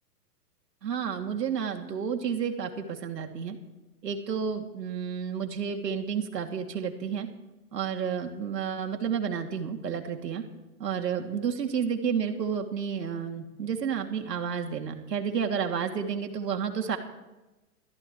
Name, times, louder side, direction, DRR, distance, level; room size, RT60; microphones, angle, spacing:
voice 1, 0.8-3.6 4.0-7.3 7.7-10.4 10.8-17.0, right 7 dB, 80° right, 4 dB, 2.8 m, -31 dB
28.5 x 14.5 x 3.2 m, 1.0 s
hypercardioid pair, 135°, 48 cm